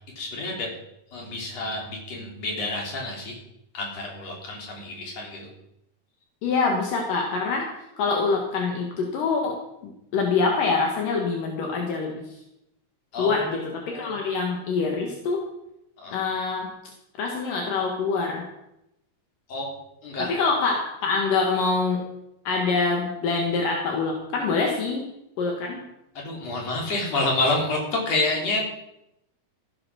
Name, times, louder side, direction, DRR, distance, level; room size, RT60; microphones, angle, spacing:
voice 1, 0.2-0.7 1.1-3.4 3.7-5.5 13.1-14.2 16.0-16.2 19.5-19.7 20.0-20.3 26.2-28.6, left 2 dB, 45° left, -1 dB, 4.5 m, -28 dB
voice 2, 6.4-7.7 8.0-12.3 13.2-15.5 16.1-16.7 17.2-18.5 20.2-22.1 22.4-25.0 25.4-25.8, left 4 dB, 75° left, 1 dB, 3.2 m, -25 dB
15.5 x 8.9 x 6.2 m, 0.84 s
omnidirectional pair, 4.0 m